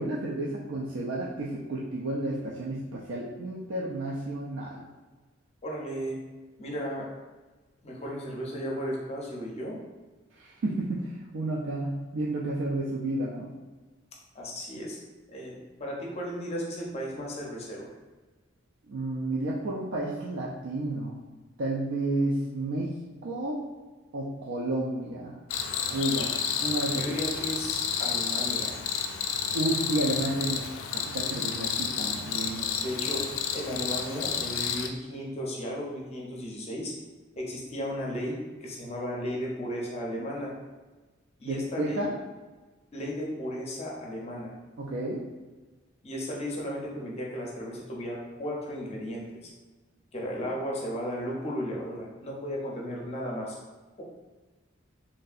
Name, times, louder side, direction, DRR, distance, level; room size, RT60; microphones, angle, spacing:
voice 1, 0.0-4.8 10.4-13.5 18.9-21.2 21.6-22.9 23.2-23.6 24.1-25.4 25.9-27.0 29.5-32.7 41.4-42.1 44.8-45.2, right 1 dB, 65° right, -5 dB, 0.4 m, -31 dB
voice 2, 5.6-6.2 6.6-7.1 7.8-9.8 14.3-15.0 15.3-17.9 26.9-28.8 32.5-36.9 37.4-40.5 41.4-42.0 42.9-44.5 46.0-49.5 50.1-53.6, equal, 30° left, -2 dB, 0.6 m, -35 dB
Cricket, 25.5-34.9, left 7 dB, 80° left, 0.3 m, -30 dB
3.0 x 2.6 x 2.4 m, 1.3 s
head